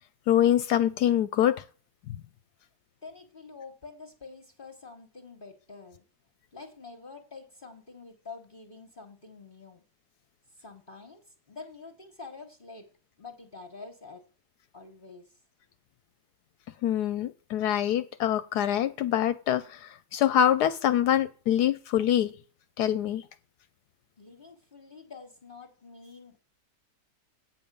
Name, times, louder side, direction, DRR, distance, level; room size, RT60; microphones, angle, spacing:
voice 1, 0.3-1.6 2.1-2.2 16.8-22.3 22.8-23.3, left 11 dB, 75° left, 13 dB, 1.1 m, -25 dB
voice 2, 3.0-6.0 6.5-9.8 10.6-11.2 11.5-12.9 13.2-14.2 14.7-15.4 24.2-26.4, left 4 dB, 35° left, 2 dB, 1.5 m, -47 dB
9.1 x 5.3 x 6.8 m, 0.37 s
omnidirectional pair, 1.8 m